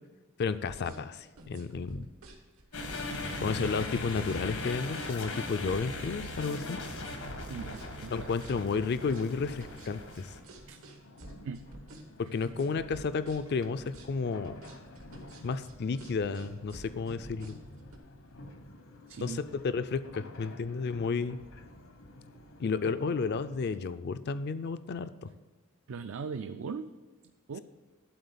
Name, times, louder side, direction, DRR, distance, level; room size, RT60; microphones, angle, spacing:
voice 1, 0.4-2.1 3.4-6.8 8.1-10.3 12.2-14.6 15.4-17.6 19.2-21.4 22.6-25.3, left 4 dB, 50° left, 13 dB, 0.4 m, -32 dB
sound 1, 0.6-18.0, right 1 dB, 85° right, 1.5 m, -51 dB
sound 2, 2.7-10.4, left 2 dB, 90° left, 1.6 m, -39 dB
voice 2, 7.5-8.3 10.7-10.8 11.4-11.7 12.2-12.4 19.1-19.4 25.9-26.9 27.5-27.6, right 5 dB, 70° right, 9 dB, 0.4 m, -39 dB
sound 3, 9.0-23.7, left 1 dB, 75° left, 1.0 m, -51 dB
12.0 x 4.1 x 6.9 m, 1.4 s
head